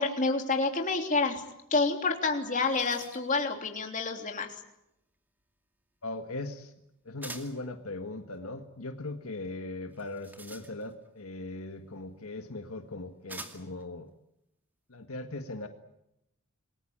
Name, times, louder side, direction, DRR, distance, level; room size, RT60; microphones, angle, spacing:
voice 1, 0.0-1.4 1.7-4.6, left 3 dB, 35° left, 4 dB, 3.3 m, -28 dB
sound 1, 2.1-2.2 2.4-3.4 7.2-7.7 9.9-11.1 12.2-12.3 13.3-13.8, right 2 dB, 10° right, 2.3 m, -46 dB
voice 2, 6.0-6.7 7.1-14.1 14.9-15.7, left 2 dB, 75° left, 6 dB, 1.7 m, -39 dB
27.5 x 20.5 x 8.9 m, 0.86 s
head